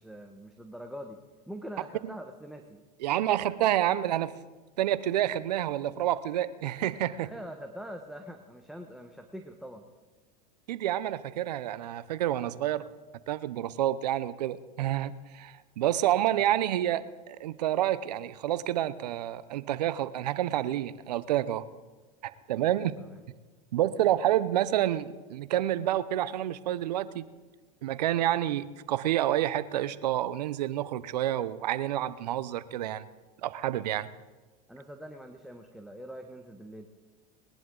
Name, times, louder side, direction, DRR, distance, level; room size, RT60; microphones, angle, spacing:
voice 1, 0.0-2.8 7.3-9.9 22.5-23.2 34.7-36.9, equal, ahead, 3 dB, 1.1 m, -44 dB
voice 2, 3.0-4.3 4.8-7.3 10.7-12.8 13.3-21.6 22.2-23.0 23.7-27.3 27.8-33.1 33.4-34.1, right 12 dB, 85° right, 16 dB, 0.7 m, -28 dB
20.5 x 11.0 x 3.9 m, 1.3 s
hypercardioid pair, 100°, 20 cm